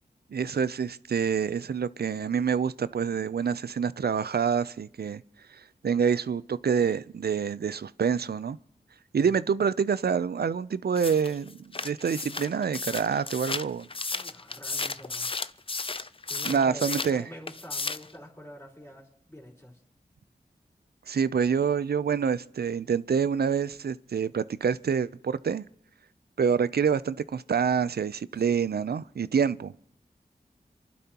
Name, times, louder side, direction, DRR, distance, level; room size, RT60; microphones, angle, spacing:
voice 1, 0.3-5.2 5.8-8.6 9.1-11.6 11.8-13.9 16.4-17.2 21.1-25.6 26.4-29.7, right 6 dB, 70° right, 0.5 m, -27 dB
sound 1, 11.0-17.2 17.5-18.1, left 3 dB, 30° left, 0.5 m, -34 dB
voice 2, 14.1-15.3 16.2-19.8 28.4-28.6, equal, 15° left, 4.0 m, -46 dB
27.0 x 11.5 x 2.9 m
cardioid pair, 50°, 17 cm